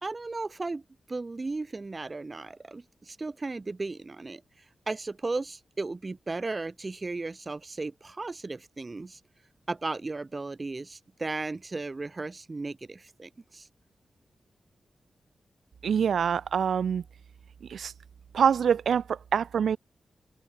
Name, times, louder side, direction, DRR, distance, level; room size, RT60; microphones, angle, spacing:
voice 1, 0.0-0.8 1.1-4.4 4.9-9.2 9.7-13.7, right 3 dB, 30° right, 2.3 m, -35 dB
voice 2, 15.8-17.0 17.7-17.9 18.3-19.8, right 7 dB, 90° right, 2.9 m, -25 dB
open air
wide cardioid pair, 90°, 0 cm